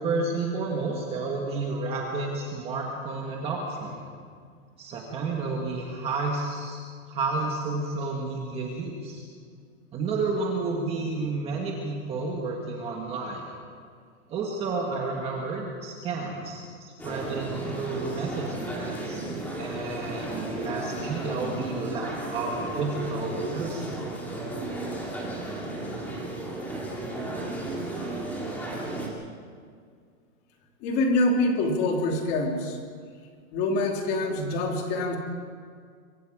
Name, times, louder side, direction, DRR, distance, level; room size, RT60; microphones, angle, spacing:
voice 1, 0.0-4.0 4.8-6.8 7.1-9.2 9.9-13.5 14.3-19.2 19.6-24.0, right 3 dB, 15° right, 0 dB, 1.5 m, -31 dB
sound 1, 17.0-29.1, right 2 dB, 5° left, 2.4 m, -34 dB
voice 2, 30.8-32.8 33.5-35.2, left 2 dB, 25° left, 2 dB, 2.6 m, -25 dB
25.5 x 24.0 x 5.0 m, 2.1 s
supercardioid pair, 175°, 41 cm